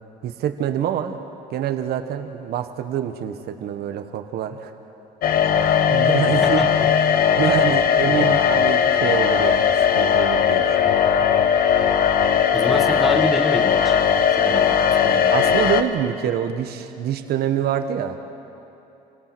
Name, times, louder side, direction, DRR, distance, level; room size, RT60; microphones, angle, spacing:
voice 1, 0.2-1.2 1.5-4.7 5.6-6.7 7.4-10.9 15.3-18.2, right 10 dB, 70° right, 8 dB, 1.5 m, -26 dB
sound 1, 5.2-15.8, left 8 dB, 60° left, 1.1 m, -18 dB
voice 2, 6.4-6.9 8.0-8.3 12.5-14.0 14.4-14.8 15.0-15.3, equal, ahead, 5 dB, 1.5 m, -27 dB
28.5 x 18.0 x 6.3 m, 2.9 s
cardioid pair, 110°, 17 cm